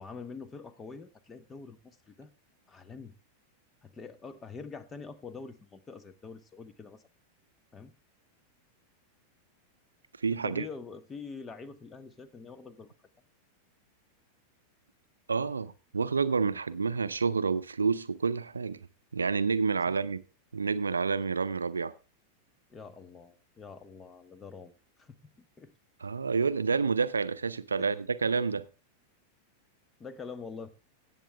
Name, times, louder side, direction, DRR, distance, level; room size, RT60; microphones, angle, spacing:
voice 1, 0.0-2.3 2.7-3.1 3.8-7.0 7.7-7.9 10.3-12.9 19.9-20.0 22.7-25.7 27.8-27.9 30.0-30.7, left 5 dB, 20° left, 1.0 m, -45 dB
voice 2, 10.2-10.6 15.3-18.8 19.1-20.2 20.5-21.9 26.0-28.6, right 5 dB, 75° right, 0.5 m, -29 dB
17.5 x 7.5 x 3.3 m
figure-of-eight pair, 90°, 0 cm